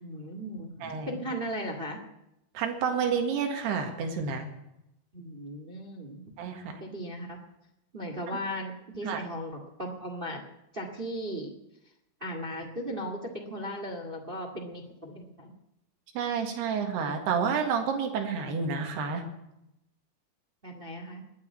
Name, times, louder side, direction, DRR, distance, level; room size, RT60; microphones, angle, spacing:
voice 1, 0.0-2.0 5.1-6.2 6.8-7.4 7.9-10.4 10.7-11.5 12.2-15.5 20.6-21.2, equal, 45° right, 3 dB, 0.6 m, -37 dB
voice 2, 0.8-1.2 2.6-4.5 6.4-6.8 9.1-9.2 16.2-19.2, right 6 dB, 85° right, 4 dB, 3.9 m, -29 dB
20.5 x 8.4 x 8.4 m, 0.85 s
omnidirectional pair, 4.6 m